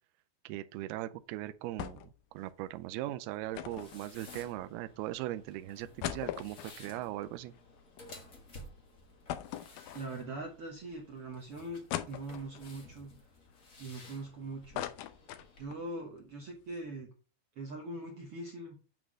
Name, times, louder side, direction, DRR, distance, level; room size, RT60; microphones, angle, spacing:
voice 1, 0.5-2.0 2.3-7.5, right 15 dB, 90° right, 2.5 m, -39 dB
sound 1, 1.8-2.2 2.5-2.6 3.5-4.8 5.3-5.4 5.8-8.2 8.6-8.7 9.3-10.4 10.9-11.0 11.9-12.7 13.3-14.3 14.5-15.9 16.2-16.3 16.6-16.8, left 12 dB, 75° left, 2.2 m, -41 dB
sound 2, 3.4-15.6, left 2 dB, 45° left, 1.0 m, -55 dB
voice 2, 9.9-11.8 12.1-13.1 13.8-14.9 15.6-17.1 17.5-18.8, right 2 dB, 70° right, 1.3 m, -42 dB
8.9 x 4.0 x 6.2 m
omnidirectional pair, 4.4 m